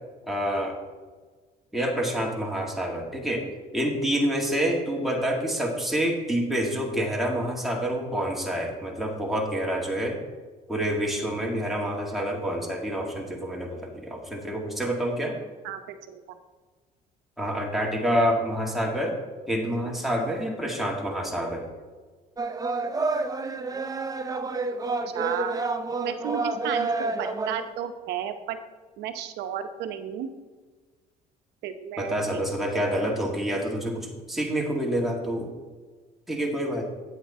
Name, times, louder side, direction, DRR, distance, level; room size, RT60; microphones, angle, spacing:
voice 1, 0.3-0.8 1.7-3.5 3.7-10.2 10.7-15.4 17.4-19.2 19.5-21.7 32.0-35.5 36.3-36.9, equal, ahead, -2 dB, 2.1 m, -27 dB
voice 2, 15.6-16.2 25.1-25.6 26.0-26.9 27.2-28.6 29.0-30.3 31.6-32.4, right 9 dB, 85° right, 8 dB, 0.9 m, -33 dB
sound 1, 22.4-27.7, right 3 dB, 20° right, 0.7 m, -29 dB
8.5 x 8.5 x 4.3 m, 1.4 s
cardioid pair, 110°, 17 cm